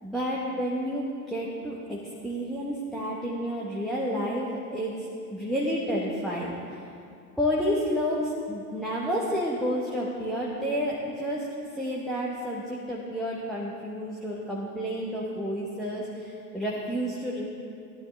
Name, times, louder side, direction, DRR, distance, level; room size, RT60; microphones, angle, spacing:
voice 1, 0.0-6.8 7.4-11.5 11.7-17.4, equal, ahead, -5 dB, 1.2 m, -30 dB
14.5 x 11.0 x 3.3 m, 2.4 s
figure-of-eight pair, 90°, 48 cm